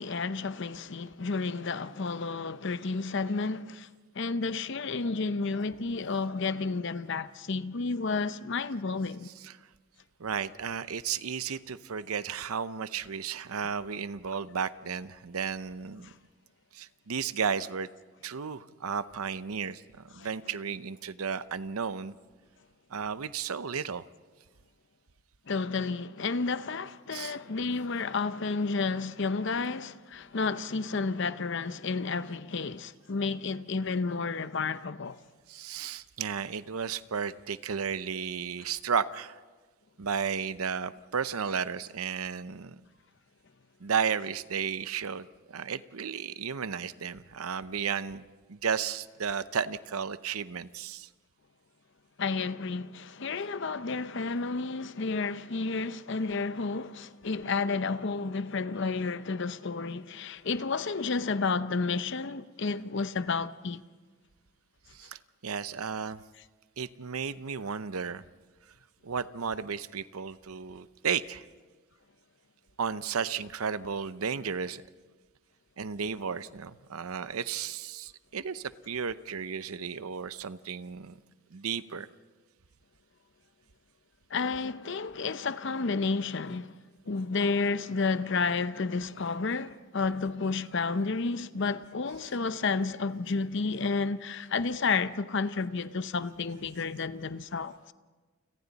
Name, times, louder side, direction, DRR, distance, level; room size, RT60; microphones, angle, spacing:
voice 1, 0.0-3.9 4.2-9.3 16.0-16.1 20.2-20.3 25.5-35.2 52.2-63.8 84.3-86.7 87.1-97.9, left 4 dB, 55° left, 0.7 m, -31 dB
voice 2, 10.2-16.1 16.7-17.9 18.2-22.1 22.9-24.0 27.1-27.4 35.5-39.4 40.0-42.8 43.8-48.2 48.5-51.1 64.9-66.2 66.8-68.2 69.0-71.4 72.8-74.8 75.8-81.2 81.5-82.1, right 6 dB, 85° right, 0.7 m, -33 dB
30.0 x 25.5 x 4.1 m
head